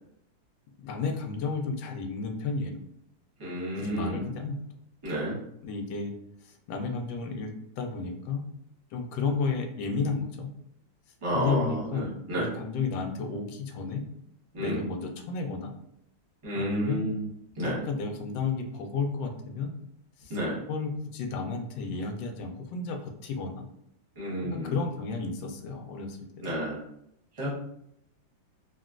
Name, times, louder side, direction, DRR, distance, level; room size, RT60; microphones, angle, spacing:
voice 1, 0.8-2.8 3.8-4.5 5.6-6.1 6.4-8.4 8.9-10.5 11.3-14.0 14.6-15.7 16.5-17.0 17.6-19.7 20.2-20.3 20.7-23.7 24.4-26.5, left 4 dB, 80° left, 3 dB, 1.3 m, -32 dB
voice 2, 3.4-4.2 5.0-5.4 11.2-12.5 14.5-14.9 16.4-17.3 17.6-17.8 20.3-20.6 24.2-24.7 26.4-26.8 27.4-27.6, right 1 dB, 25° right, -5 dB, 0.8 m, -30 dB
4.0 x 2.1 x 2.4 m, 0.75 s
omnidirectional pair, 2.1 m